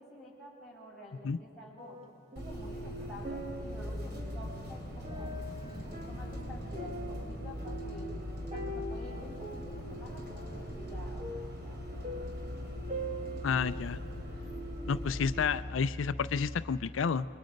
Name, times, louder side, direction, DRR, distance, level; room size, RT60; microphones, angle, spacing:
voice 1, 0.0-2.0 2.4-5.4 5.7-8.1 8.5-12.4, equal, ahead, -6 dB, 5.6 m, -50 dB
sound 1, 1.8-2.7 3.1-14.1 14.6-14.7, equal, 35° right, 1.7 m, -44 dB
Bus, 2.4-15.3, equal, 55° right, 3.5 m, -40 dB
sound 2, 10.3-16.7, left 1 dB, 15° right, 1.4 m, -45 dB
voice 2, 13.4-14.0 14.9-17.3, left 6 dB, 80° left, 14 dB, 0.4 m, -30 dB
27.5 x 22.0 x 5.3 m, 2.5 s
head